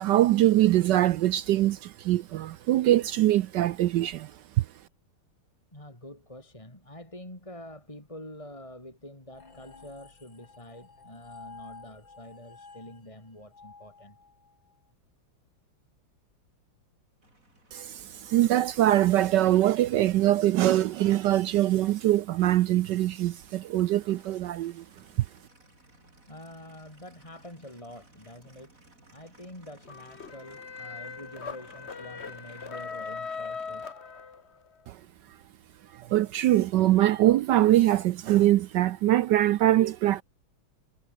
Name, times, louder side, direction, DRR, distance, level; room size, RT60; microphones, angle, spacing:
voice 1, 0.0-4.3 17.7-24.8 34.9-35.0 36.1-40.2, right 14 dB, 75° right, 1.0 m, -23 dB
voice 2, 5.7-14.2 26.3-28.7 29.1-33.9, left 1 dB, 15° left, 4.8 m, -46 dB
sound 1, 9.3-14.7, left 4 dB, 60° left, 4.6 m, -51 dB
Aircraft, 17.2-33.9, right 2 dB, 40° right, 6.2 m, -58 dB
sound 2, 29.8-34.7, left 5 dB, 35° left, 1.6 m, -39 dB
omnidirectional pair, 2.3 m